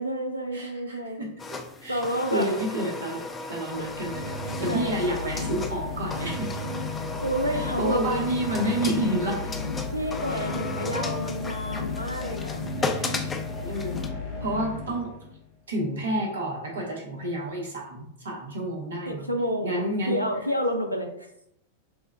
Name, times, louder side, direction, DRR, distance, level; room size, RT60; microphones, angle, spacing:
voice 1, 0.0-1.2 1.9-2.6 3.8-3.9 4.7-5.0 7.2-8.2 9.9-12.6 19.1-21.1, equal, 90° left, 3 dB, 0.6 m, -29 dB
voice 2, 0.5-3.2 3.5-6.6 7.5-9.7 10.3-10.5 11.7-11.8 12.8-13.3 13.6-14.0 14.4-15.1 15.7-19.3 19.6-20.3, right 1 dB, 65° right, 0 dB, 1.1 m, -30 dB
sound 1, 1.4-14.1, left 3 dB, 20° left, 0.4 m, -36 dB
sound 2, 3.6-15.4, left 3 dB, 55° left, 0.9 m, -34 dB
6.6 x 2.3 x 2.3 m, 0.76 s
figure-of-eight pair, 90°, 0 cm